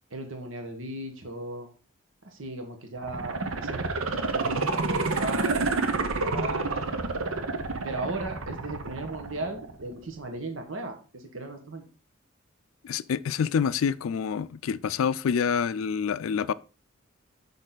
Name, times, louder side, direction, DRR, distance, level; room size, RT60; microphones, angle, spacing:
voice 1, 0.1-1.7 2.2-3.9 4.3-5.8 6.2-6.9 7.8-11.8, right 2 dB, 70° right, 1.3 m, -36 dB
sound 1, 3.0-10.0 10.4-10.5, right 3 dB, 90° right, 0.9 m, -29 dB
voice 2, 12.8-16.5, left 7 dB, 80° left, 0.3 m, -27 dB
6.5 x 5.3 x 3.9 m
head